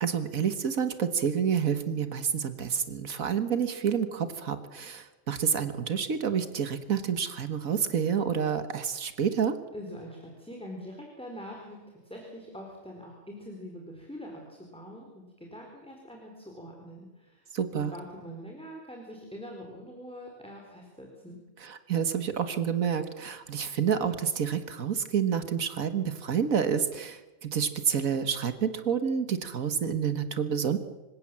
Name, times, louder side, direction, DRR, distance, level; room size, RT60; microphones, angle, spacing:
voice 1, 0.0-9.6 17.5-17.9 21.6-30.8, right 7 dB, 80° right, 10 dB, 1.8 m, -29 dB
voice 2, 9.7-21.4, equal, 5° left, 0 dB, 4.1 m, -44 dB
26.5 x 16.5 x 7.6 m, 1.1 s
omnidirectional pair, 1.4 m